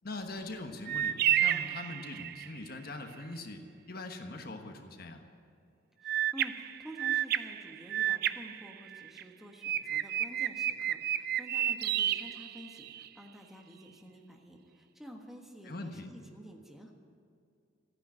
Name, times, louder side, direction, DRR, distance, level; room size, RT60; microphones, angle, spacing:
voice 1, 0.0-5.2 15.6-16.1, left 2 dB, 55° left, 5 dB, 1.2 m, -42 dB
sound 1, 0.9-2.6 6.0-9.2 9.6-13.1, right 11 dB, 55° right, 0.5 m, -31 dB
voice 2, 6.0-16.9, equal, ahead, 1 dB, 1.4 m, -50 dB
14.0 x 9.9 x 8.8 m, 2.4 s
head